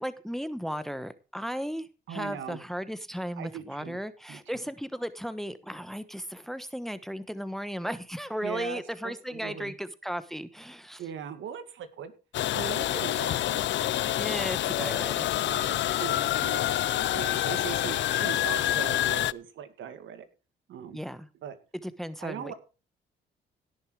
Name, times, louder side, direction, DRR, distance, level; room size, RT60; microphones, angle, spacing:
voice 1, 0.0-11.0 14.1-15.5 20.9-21.3 21.8-22.5, equal, ahead, 13 dB, 1.1 m, -36 dB
voice 2, 2.1-2.6 3.4-4.0 4.3-4.6 8.4-9.7 11.0-12.1 12.5-14.1 14.8-15.0 15.5-20.3 20.7-21.1 21.4-21.6 22.2-22.5, right 8 dB, 75° right, 10 dB, 2.2 m, -40 dB
sound 1, 12.3-19.3, left 13 dB, 65° left, 0.6 m, -27 dB
17.0 x 6.8 x 4.8 m, 0.32 s
cardioid pair, 90°, 20 cm